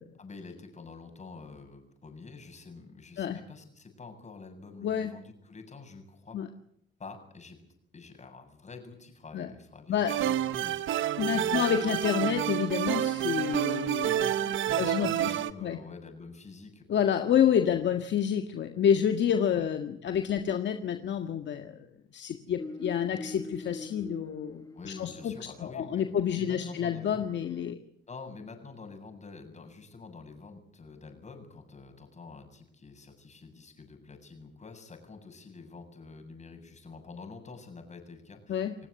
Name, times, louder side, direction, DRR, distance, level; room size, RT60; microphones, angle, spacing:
voice 1, 0.2-6.4 7.0-7.6 7.9-11.6 14.6-18.0 19.5-19.6 24.7-27.3 28.1-38.9, left 4 dB, 35° left, 5 dB, 7.8 m, -47 dB
voice 2, 4.8-5.1 6.3-6.5 9.3-9.5 9.9-10.1 11.2-15.3 15.6-15.8 16.9-21.9 22.1-25.3 25.7-27.8 38.5-38.8, left 8 dB, 65° left, 6 dB, 1.8 m, -28 dB
sound 1, 10.1-15.5, right 11 dB, 80° right, 1.2 m, -29 dB
sound 2, 22.6-25.5 26.5-27.7, left 2 dB, 15° left, 1.8 m, -44 dB
29.0 x 17.5 x 8.3 m, 0.71 s
cardioid pair, 90°, 20 cm